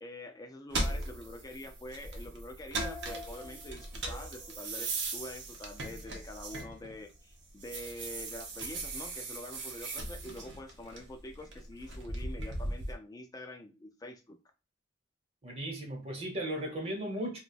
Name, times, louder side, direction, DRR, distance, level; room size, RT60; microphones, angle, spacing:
voice 1, 0.0-14.4, left 1 dB, 20° left, 0.4 m, -46 dB
sound 1, 0.7-7.1 7.5-12.9, right 2 dB, 65° right, 0.7 m, -38 dB
voice 2, 15.4-17.4, right 1 dB, 30° right, 1.0 m, -36 dB
2.4 x 2.3 x 3.9 m
head